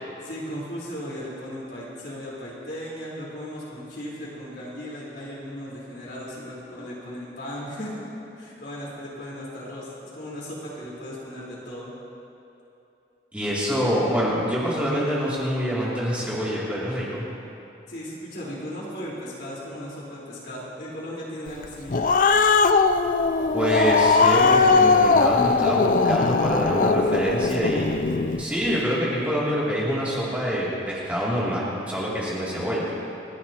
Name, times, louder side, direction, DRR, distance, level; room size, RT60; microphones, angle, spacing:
voice 1, 0.2-8.0 8.4-11.9 17.9-22.1, equal, 60° left, -6 dB, 4.3 m, -36 dB
voice 2, 13.3-17.3 23.5-27.9 28.4-32.9, equal, 10° right, -8 dB, 2.9 m, -26 dB
Growling, 21.6-28.4, left 4 dB, 45° left, 0.4 m, -19 dB
29.0 x 11.5 x 3.0 m, 2.8 s
head